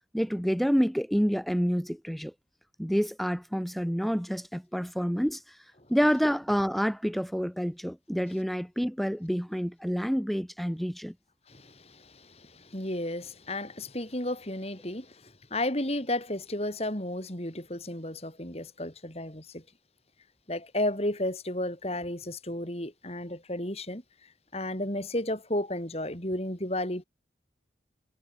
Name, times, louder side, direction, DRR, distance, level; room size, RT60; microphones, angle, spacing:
voice 1, 0.1-2.3 2.8-5.6 5.9-11.1, equal, ahead, 3.0 m, -28 dB
voice 2, 11.5-19.6 20.5-24.0 24.5-27.0, left 1 dB, 35° left, 4.6 m, -33 dB
head